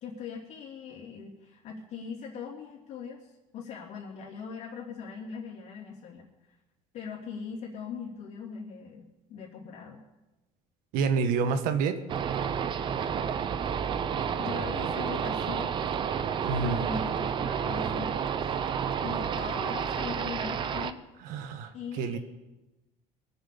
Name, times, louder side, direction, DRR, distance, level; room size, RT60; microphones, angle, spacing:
voice 1, 0.0-6.6 6.9-10.0 14.3-15.8 16.6-18.4 19.0-21.0 21.7-22.2, left 6 dB, 60° left, -7 dB, 3.0 m, -40 dB
voice 2, 10.9-12.0 16.4-16.8 21.2-21.7 22.0-22.2, right 5 dB, 75° right, 9 dB, 1.6 m, -28 dB
sound 1, 12.1-20.9, right 7 dB, 35° right, 0.8 m, -30 dB
23.0 x 8.0 x 7.0 m, 1.0 s
cardioid pair, 150°, 14 cm